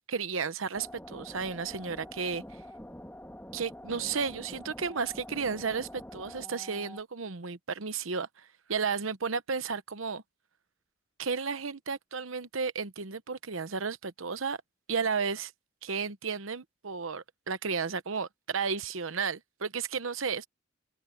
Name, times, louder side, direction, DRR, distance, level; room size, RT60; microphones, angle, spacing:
voice 1, 0.1-2.4 3.5-10.2 11.2-14.6 14.9-15.5 15.8-20.5, right 5 dB, 90° right, 1.0 m, -33 dB
sound 1, 0.7-7.0, equal, 10° left, 1.5 m, -46 dB
head